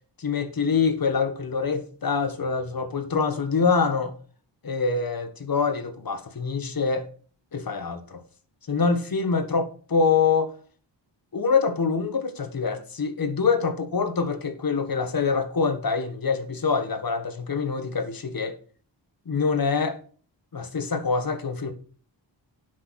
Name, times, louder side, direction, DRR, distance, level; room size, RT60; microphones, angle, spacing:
voice 1, 0.2-4.1 4.6-7.1 7.5-8.2 8.7-10.5 11.3-18.5 19.3-20.0 20.5-21.7, left 5 dB, 50° left, 1.6 m, -25 dB
9.3 x 6.3 x 6.4 m
wide cardioid pair, 90°, 44 cm